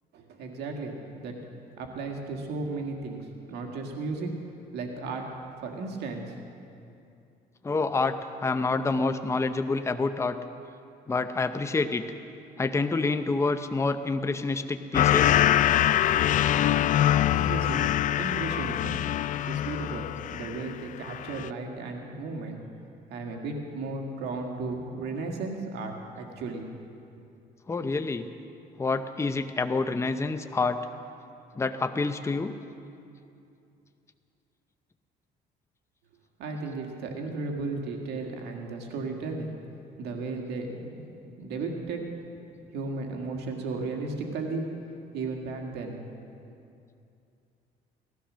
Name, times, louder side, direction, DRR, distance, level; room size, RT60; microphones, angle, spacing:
voice 1, 0.1-1.3 1.8-4.3 4.7-5.2 5.6-6.3 17.3-19.0 19.5-22.6 23.1-26.7 36.4-39.5 40.0-41.1 41.4-42.0 42.7-44.6 45.1-46.0, right 3 dB, 75° right, 2 dB, 2.0 m, -35 dB
voice 2, 7.6-8.2 8.4-10.4 11.1-12.0 12.6-15.4 27.7-28.3 28.8-30.8 31.6-32.5, left 3 dB, 15° left, 8 dB, 0.7 m, -27 dB
sound 1, 14.9-20.7 21.0-21.5, left 11 dB, 50° left, 0.4 m, -24 dB
17.5 x 13.0 x 6.3 m, 2.6 s
cardioid pair, 110°, 17 cm